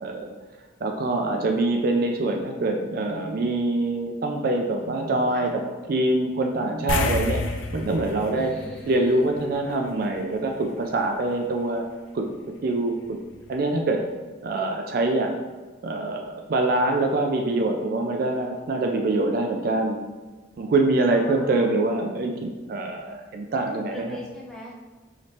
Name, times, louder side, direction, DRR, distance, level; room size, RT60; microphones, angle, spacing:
voice 1, 0.0-0.3 0.8-5.6 5.9-7.4 7.7-8.5 8.9-11.8 12.1-12.3 12.6-13.2 13.5-14.0 14.4-15.4 15.8-20.0 20.6-24.2, right 2 dB, 50° right, 3 dB, 0.3 m, -24 dB
sound 1, 3.1-3.3 4.8-5.1 6.5-6.8 8.2-8.5, right 1 dB, 35° left, 1.0 m, -40 dB
sound 2, 6.9-9.7 10.0-10.2 13.0-13.1 13.5-13.6, left 3 dB, 85° left, 0.4 m, -29 dB
voice 2, 8.4-9.2 21.1-21.8 23.9-24.7, left 1 dB, 5° left, -5 dB, 0.7 m, -40 dB
4.9 x 3.1 x 2.7 m, 1.3 s
head